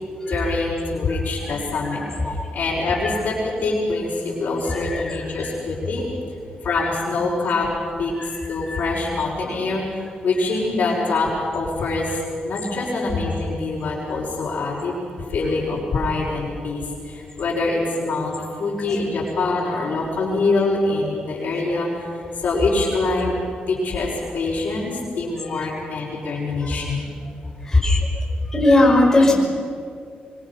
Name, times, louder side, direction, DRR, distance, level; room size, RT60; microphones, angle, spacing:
voice 1, 0.3-6.0 6.6-7.7 8.0-8.1 8.5-15.0 15.3-22.1 22.4-23.4 23.7-27.0, left 3 dB, 60° left, -7 dB, 5.6 m, -24 dB
voice 2, 4.7-5.2 6.8-6.9 8.7-8.8 26.6-26.8 27.7-28.0 28.5-29.3, left 2 dB, 15° left, -2 dB, 5.4 m, -18 dB
25.0 x 24.0 x 5.9 m, 2.3 s
cardioid pair, 110°, 3 cm